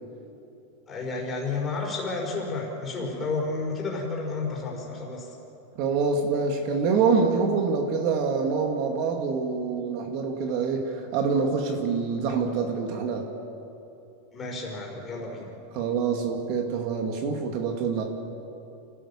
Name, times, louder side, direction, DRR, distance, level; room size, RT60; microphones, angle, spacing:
voice 1, 0.9-5.3 14.3-15.5, left 3 dB, 20° left, -2 dB, 4.9 m, -31 dB
voice 2, 5.8-13.3 15.7-18.0, right 5 dB, 45° right, 4 dB, 2.2 m, -26 dB
28.0 x 16.0 x 7.2 m, 2.8 s
supercardioid pair, 155°, 0 cm